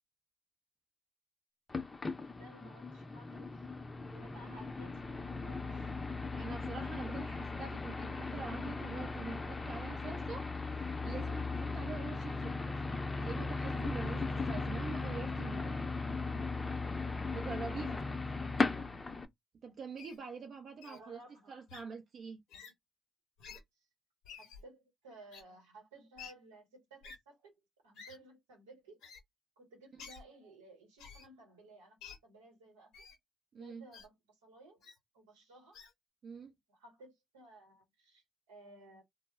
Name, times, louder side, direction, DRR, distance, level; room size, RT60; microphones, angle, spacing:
sound 1, 1.7-19.3, left 3 dB, 30° left, 0.5 m, -37 dB
voice 1, 2.3-3.5 4.1-5.9 20.9-21.5 23.8-23.9 24.3-29.0 29.6-32.0 32.2-32.9 33.5-34.9 35.1-35.8 36.7-39.0, right 1 dB, 90° right, 1.0 m, -57 dB
voice 2, 6.4-10.5 11.0-12.8 13.2-15.8 17.3-18.1 19.6-21.2 21.5-22.4 33.5-33.8 36.2-36.5, right 5 dB, 60° right, 0.5 m, -45 dB
Wild animals, 20.0-20.2 20.8-21.0 21.7-21.8 22.5-22.7 23.4-23.6 24.2-24.6 25.3-25.4 26.2-26.3 27.0-27.2 28.0-28.2 29.0-29.2 30.0-30.2 31.0-31.3 32.0-32.2 32.9-33.2 33.9-34.1 34.8-35.0 35.7-35.9, left 6 dB, 75° left, 0.8 m, -51 dB
2.0 x 2.0 x 3.5 m
hypercardioid pair, 40°, 0 cm